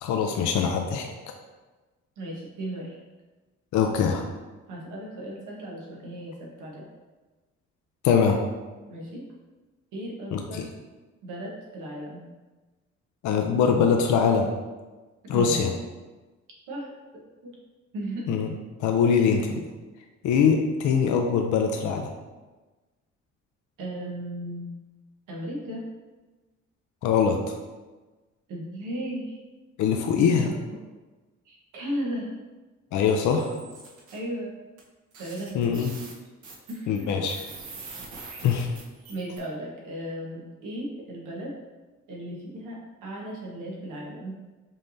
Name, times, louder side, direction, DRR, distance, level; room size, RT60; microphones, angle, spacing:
voice 1, 0.0-1.1 3.7-4.2 8.0-8.4 10.3-10.7 13.2-14.5 15.3-15.7 18.3-18.5 18.8-19.6 20.2-22.1 27.0-27.4 29.8-30.5 32.9-33.6 35.5-35.9 36.9-37.4 38.4-38.7, left 6 dB, 75° left, 3 dB, 0.5 m, -22 dB
voice 2, 2.2-3.0 4.7-6.9 8.9-9.2 9.9-10.7 11.2-12.2 15.3-15.6 16.7-16.9 17.4-17.5 17.9-18.4 23.8-24.7 25.3-25.8 28.5-29.4 30.2-30.8 31.4-32.3 34.1-34.5 35.2-35.8 36.7-37.1 38.2-38.5 39.1-41.5 42.1-44.3, right 1 dB, 90° right, -3 dB, 1.3 m, -35 dB
sound 1, 33.4-34.2 34.8-34.9 35.1-39.4, right 3 dB, 70° right, 1.1 m, -43 dB
5.4 x 3.2 x 2.7 m, 1.2 s
cardioid pair, 90°, 30 cm